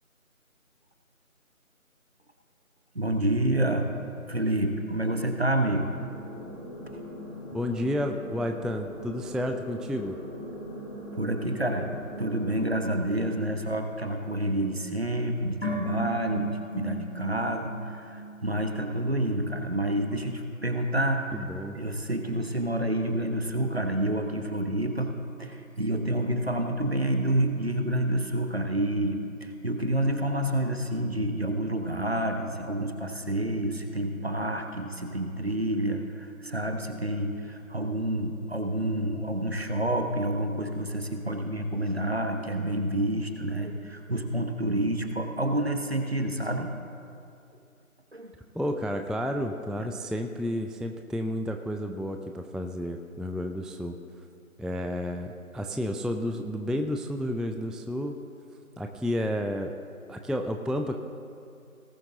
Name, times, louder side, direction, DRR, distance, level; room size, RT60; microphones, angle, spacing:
voice 1, 2.9-3.9 4.3-5.9 6.9-7.0 11.2-11.9 12.2-21.4 21.7-25.1 25.4-46.7 48.1-48.3 49.8-49.9, right 1 dB, 45° right, 5 dB, 0.9 m, -28 dB
sound 1, 5.8-12.6, left 1 dB, 20° left, 1.6 m, -41 dB
voice 2, 7.5-10.2 21.3-21.8 48.5-54.0 54.6-58.1 58.8-59.7 60.1-61.0, equal, ahead, 5 dB, 0.4 m, -31 dB
sound 2, 15.6-18.9 19.2-19.3, equal, 50° left, 2.2 m, -35 dB
18.5 x 7.6 x 3.7 m, 2.5 s
figure-of-eight pair, 175°, 43 cm